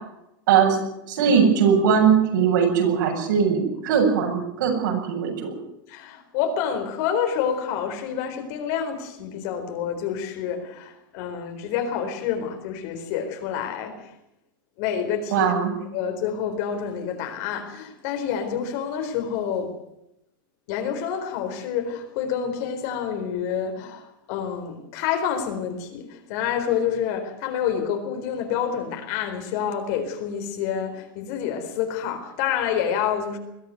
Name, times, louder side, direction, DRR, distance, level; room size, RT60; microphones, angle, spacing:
voice 1, 0.5-0.8 1.1-5.5 15.3-15.7, right 7 dB, 65° right, 2 dB, 7.6 m, -20 dB
voice 2, 5.9-14.1 14.8-15.5 15.9-19.7 20.7-33.4, left 8 dB, 45° left, 6 dB, 4.2 m, -28 dB
21.5 x 14.5 x 9.4 m, 0.85 s
supercardioid pair, 165°, 11 cm